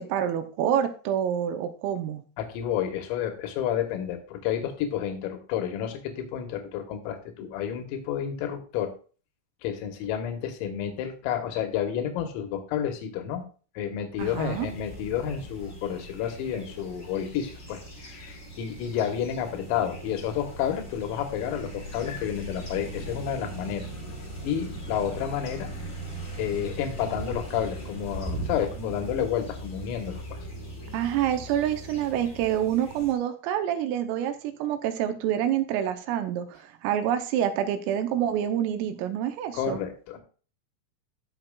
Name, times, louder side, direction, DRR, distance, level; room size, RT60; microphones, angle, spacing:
voice 1, 0.0-2.2 14.2-14.7 30.9-39.8, right 10 dB, 85° right, 8 dB, 3.3 m, -27 dB
voice 2, 2.4-8.9 9.6-13.5 13.8-23.9 24.4-25.7 26.4-30.5 39.5-40.2, left 9 dB, 80° left, 5 dB, 4.0 m, -30 dB
sound 1, 14.2-33.1, right 1 dB, 55° left, 0.7 m, -39 dB
17.5 x 6.0 x 2.4 m, 0.38 s
omnidirectional pair, 6.0 m